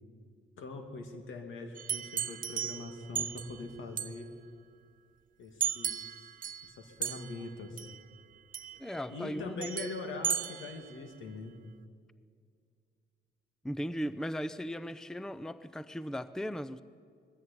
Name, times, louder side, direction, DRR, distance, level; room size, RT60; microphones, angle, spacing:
voice 1, 0.6-4.3 5.4-6.2 6.6-7.9 9.1-11.5, left 3 dB, 80° left, 5 dB, 2.6 m, -42 dB
sound 1, 1.8-3.6 4.0-4.2 5.6-6.8 7.0-7.5 7.8-8.0 8.5-9.0 9.6-10.9, right 8 dB, 45° right, 0.7 m, -36 dB
voice 2, 8.8-9.7 13.6-16.8, equal, 5° left, 15 dB, 0.5 m, -37 dB
20.5 x 14.5 x 8.6 m, 2.2 s
cardioid pair, 90°, 20 cm